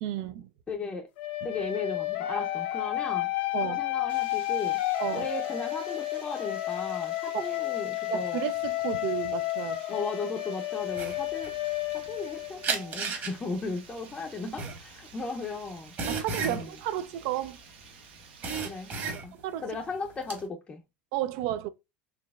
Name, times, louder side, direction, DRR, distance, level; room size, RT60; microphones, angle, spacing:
voice 1, 0.0-0.5 3.5-3.8 5.0-5.3 7.3-7.4 8.1-9.8 16.1-17.6 19.4-19.7 21.1-21.7, right 12 dB, 65° right, 0.4 m, -32 dB
voice 2, 0.7-1.1 1.4-3.3 3.6-4.8 5.1-8.4 9.9-15.9 16.5-16.7 18.6-19.3 19.6-20.8, left 3 dB, 20° left, 0.6 m, -36 dB
sound 1, 1.2-13.0, left 17 dB, 80° left, 0.7 m, -31 dB
Water, 4.1-19.1, right 6 dB, 90° right, 1.1 m, -53 dB
sound 2, 10.9-12.3 12.6-17.9 18.2-19.6 19.9-20.4, right 5 dB, 35° right, 1.2 m, -34 dB
4.0 x 3.1 x 2.3 m
supercardioid pair, 120°, 6 cm